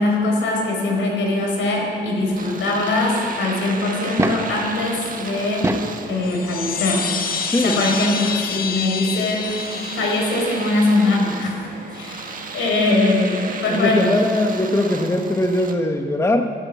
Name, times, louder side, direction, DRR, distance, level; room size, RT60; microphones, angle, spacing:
voice 1, 0.0-5.7 6.1-7.0 7.6-9.6 9.9-11.5 11.9-14.2, left 2 dB, 75° left, 0 dB, 4.3 m, -21 dB
Domestic sounds home sounds, 2.4-15.8, right 4 dB, 45° right, 1.6 m, -34 dB
sound 1, 4.1-4.6 5.4-6.0 7.3-7.4 9.2-9.3 9.5-9.6, right 1 dB, 15° right, 0.9 m, -24 dB
sound 2, 6.2-11.2, left 6 dB, 45° left, 1.1 m, -28 dB
voice 2, 7.5-7.8 12.9-13.0 13.7-16.5, left 1 dB, 15° left, 5 dB, 0.9 m, -20 dB
12.5 x 11.0 x 8.5 m, 2.7 s
cardioid pair, 90°, 20 cm